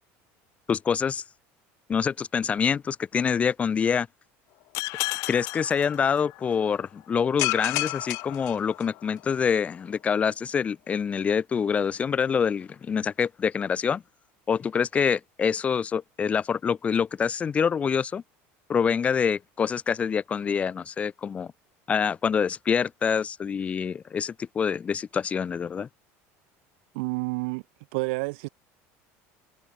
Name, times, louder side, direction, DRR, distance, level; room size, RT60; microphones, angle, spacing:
voice 1, 0.7-1.2 1.9-4.1 5.3-14.0 14.5-18.2 18.7-21.5 21.9-25.9, left 7 dB, 20° left, 3.2 m, -26 dB
sound 1, 4.7-6.5 7.4-9.2, left 25 dB, 60° left, 6.8 m, -31 dB
voice 2, 26.9-27.6 27.9-28.5, right 28 dB, 80° right, 1.9 m, -29 dB
cardioid pair, 160°, 6 cm